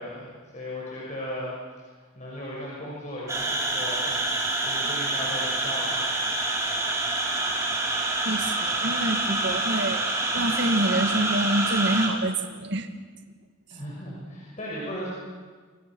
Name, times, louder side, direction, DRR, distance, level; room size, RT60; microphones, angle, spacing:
voice 1, 0.0-4.2 4.6-6.1 6.4-6.5 13.7-15.1, left 1 dB, 35° left, -5 dB, 6.2 m, -37 dB
sound 1, 3.3-12.1, right 2 dB, 15° right, 4.3 m, -27 dB
voice 2, 8.2-12.9, right 1 dB, 55° right, 7 dB, 1.9 m, -27 dB
27.5 x 25.5 x 6.2 m, 1.5 s
head